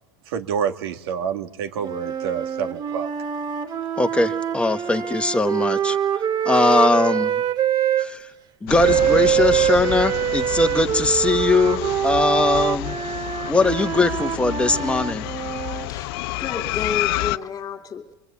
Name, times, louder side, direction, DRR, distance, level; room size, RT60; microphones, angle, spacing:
voice 1, 0.3-3.1, right 7 dB, 80° right, 6 dB, 2.3 m, -28 dB
sound 1, 1.8-8.1 8.8-15.9, right 10 dB, 35° right, 2.1 m, -24 dB
voice 2, 4.0-6.0 6.4-7.3 8.0-8.2 8.6-13.0 13.5-15.3, left 3 dB, 10° left, 7 dB, 1.4 m, -20 dB
sound 2, 8.7-17.4, left 18 dB, 70° left, 0.8 m, -29 dB
voice 3, 16.4-18.1, left 6 dB, 30° left, 5 dB, 2.6 m, -31 dB
23.5 x 23.0 x 8.5 m, 0.99 s
supercardioid pair, 120°, 13 cm